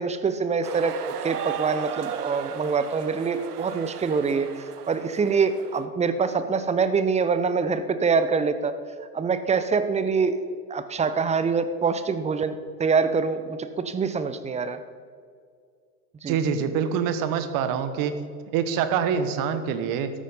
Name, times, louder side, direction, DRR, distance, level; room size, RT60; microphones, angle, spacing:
voice 1, 0.0-8.7 9.1-10.4 10.7-14.8 16.2-16.4, right 5 dB, 15° right, 11 dB, 0.8 m, -25 dB
sound 1, 0.6-5.8, right 9 dB, 80° right, 0.9 m, -36 dB
voice 2, 16.3-18.2 18.5-20.1, right 7 dB, 45° right, 10 dB, 1.3 m, -25 dB
13.0 x 8.7 x 5.5 m, 2.1 s
hypercardioid pair, 85°, 46 cm